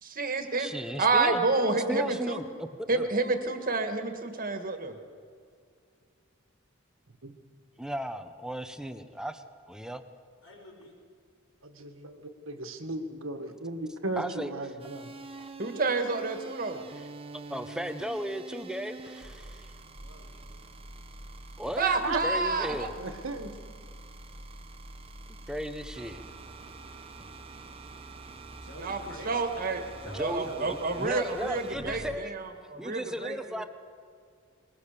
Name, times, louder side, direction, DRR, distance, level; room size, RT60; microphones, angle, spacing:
voice 1, 0.0-0.7 1.0-2.4 2.9-4.9 15.6-16.8 21.8-22.9 28.8-29.8 30.2-33.7, right 3 dB, 45° right, 6 dB, 1.8 m, -29 dB
voice 2, 0.6-1.4 1.9-3.1 7.8-10.0 14.2-14.5 16.9-17.1 17.5-19.7 21.6-23.0 25.5-26.2 30.0-32.3 32.8-33.6, equal, 5° right, 9 dB, 0.8 m, -36 dB
voice 3, 10.4-10.9 19.9-20.6 28.5-29.3 29.9-31.1, left 1 dB, 75° left, 0 dB, 5.8 m, -47 dB
voice 4, 11.6-15.1 22.0-22.2 23.0-23.5, right 2 dB, 70° right, 6 dB, 1.7 m, -36 dB
sound 1, 14.8-32.2, right 2 dB, 25° right, 1.0 m, -46 dB
20.5 x 20.5 x 6.8 m, 2.2 s
head